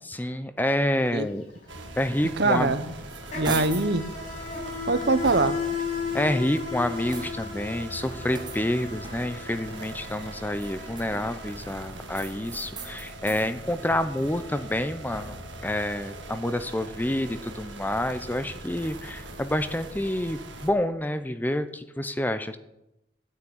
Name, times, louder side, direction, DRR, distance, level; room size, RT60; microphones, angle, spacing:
voice 1, 0.0-1.4 2.0-2.7 3.5-3.6 6.1-22.6, left 1 dB, 10° left, 11 dB, 0.6 m, -28 dB
Insect, 0.6-0.8 1.1-12.1, left 5 dB, 40° left, 6.0 m, -36 dB
sound 1, 1.7-20.7, right 1 dB, 80° right, 1.7 m, -41 dB
voice 2, 2.4-2.8 3.3-4.0 4.9-5.6, right 3 dB, 60° right, 12 dB, 0.9 m, -23 dB
sound 2, 2.9-4.0 4.5-5.8 6.4-7.6 8.3-9.5 10.4-11.5 12.1-13.5 13.9-15.6, right 3 dB, 25° right, 1.6 m, -42 dB
9.8 x 8.7 x 8.8 m, 0.89 s
head